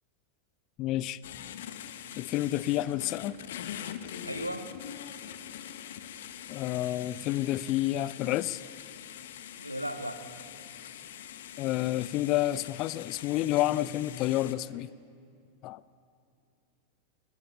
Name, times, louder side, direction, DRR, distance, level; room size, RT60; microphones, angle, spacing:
voice 1, 0.8-1.2 2.2-3.4 6.5-8.6 11.6-14.9 15.6-15.8, left 15 dB, 40° left, 20 dB, 0.5 m, -29 dB
sound 1, 1.2-14.5, left 10 dB, 55° left, 1.2 m, -43 dB
voice 2, 4.2-4.9 9.6-10.2, equal, 90° right, 9 dB, 1.4 m, -36 dB
20.5 x 19.5 x 9.0 m, 2.5 s
figure-of-eight pair, 90°, 0 cm